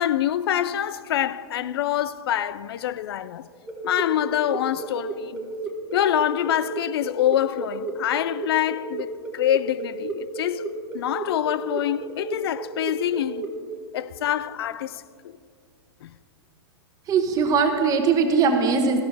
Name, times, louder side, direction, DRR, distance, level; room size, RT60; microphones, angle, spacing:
voice 1, 0.0-3.5 3.8-5.5 5.9-13.5 13.9-15.4 16.0-16.1, left 11 dB, 70° left, 0.4 m, -26 dB
sound 1, 3.7-13.5, right 4 dB, 10° right, 1.6 m, -33 dB
voice 2, 17.1-19.0, right 5 dB, 25° right, 1.2 m, -20 dB
14.5 x 12.0 x 3.4 m
hypercardioid pair, 135°, 14 cm